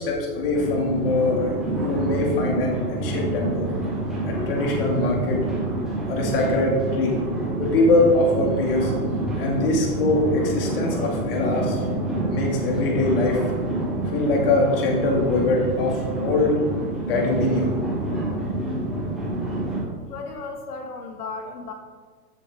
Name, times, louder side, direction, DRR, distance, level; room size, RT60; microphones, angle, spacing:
voice 1, 0.0-3.7 4.3-5.4 6.1-7.1 7.6-8.9 9.4-11.8 12.3-13.4 14.1-16.6 17.1-17.7, left 2 dB, 40° left, -1 dB, 2.6 m, -23 dB
sound 1, 0.5-19.8, right 1 dB, ahead, 1.2 m, -27 dB
voice 2, 20.1-21.7, left 3 dB, 75° left, 3 dB, 2.3 m, -35 dB
15.0 x 6.9 x 3.9 m, 1.4 s
hypercardioid pair, 175°, 46 cm